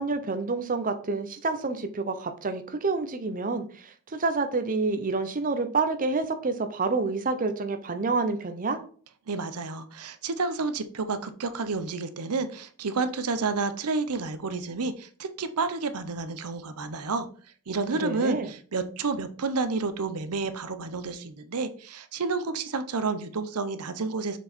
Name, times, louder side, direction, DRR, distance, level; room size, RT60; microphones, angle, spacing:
voice 1, 0.0-8.8 17.9-18.5, right 3 dB, 40° right, 8 dB, 0.7 m, -28 dB
voice 2, 9.3-17.3 17.7-24.4, right 4 dB, 85° right, 11 dB, 0.7 m, -30 dB
6.6 x 4.6 x 4.3 m, 0.44 s
head